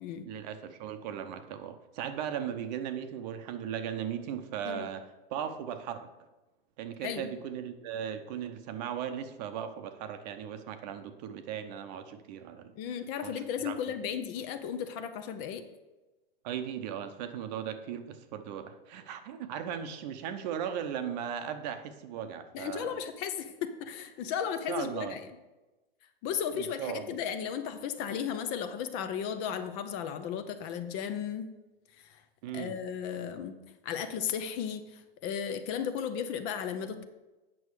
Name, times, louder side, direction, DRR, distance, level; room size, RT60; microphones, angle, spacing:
voice 1, 0.2-6.1 6.8-12.7 13.2-13.3 13.6-13.7 16.4-22.9 24.7-25.2 26.5-27.2 32.4-32.7, right 9 dB, 45° right, 9 dB, 0.8 m, -37 dB
voice 2, 7.0-7.3 12.8-15.6 22.5-25.2 26.2-31.5 32.0-32.2 32.5-33.6 33.8-37.1, left 8 dB, 35° left, 9 dB, 0.6 m, -35 dB
8.5 x 6.2 x 4.8 m, 1.1 s
hypercardioid pair, 140°, 30 cm